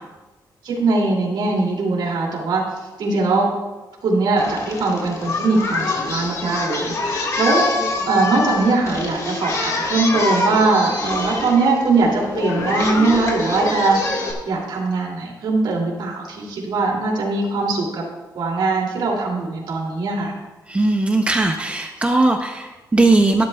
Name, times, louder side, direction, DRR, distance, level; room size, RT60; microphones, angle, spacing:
voice 1, 0.6-2.6 3.0-3.5 4.0-7.7 8.0-18.0 18.3-20.4, right 3 dB, 75° right, -2 dB, 2.6 m, -21 dB
Singing, 4.4-14.3, left 3 dB, 45° left, 1.7 m, -25 dB
voice 2, 20.7-23.4, right 2 dB, 15° right, 4 dB, 0.6 m, -18 dB
13.5 x 11.5 x 2.3 m, 1.1 s
wide cardioid pair, 165°, 8 cm